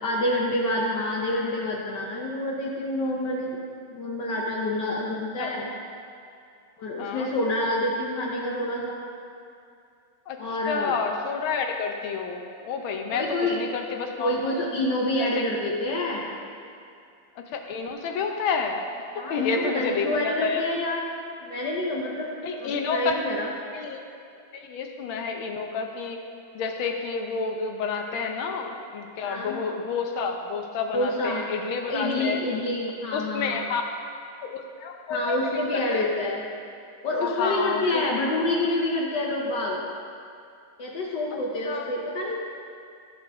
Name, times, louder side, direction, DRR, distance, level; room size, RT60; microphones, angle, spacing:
voice 1, 0.0-3.6 3.9-5.7 6.8-9.0 10.4-11.0 13.1-13.6 14.2-16.2 19.2-21.1 21.4-22.3 22.6-23.5 29.2-29.6 30.9-31.4 31.9-33.6 35.1-36.4 37.0-39.8 40.8-42.4, left 1 dB, 65° left, -3 dB, 1.5 m, -27 dB
voice 2, 7.0-7.3 10.3-13.3 13.5-14.6 15.3-15.4 17.4-18.8 19.1-20.6 22.4-23.1 23.7-24.0 24.5-26.2 26.5-32.4 33.1-33.8 34.4-36.1 37.2-38.1 41.6-41.9, left 5 dB, 80° left, 3 dB, 1.6 m, -30 dB
14.5 x 6.5 x 3.5 m, 2.4 s
omnidirectional pair, 2.2 m